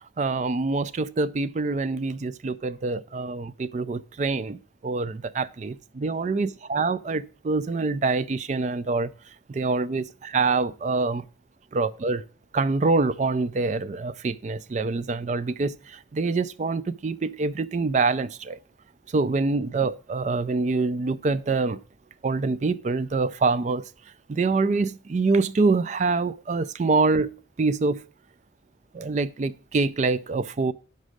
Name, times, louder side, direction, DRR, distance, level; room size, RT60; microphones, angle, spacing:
voice 1, 0.2-9.1 9.5-11.2 11.7-12.2 12.5-18.6 19.1-21.8 22.2-23.8 24.3-28.1 28.9-30.7, right 3 dB, 40° right, 0.3 m, -25 dB
6.1 x 5.4 x 6.3 m
head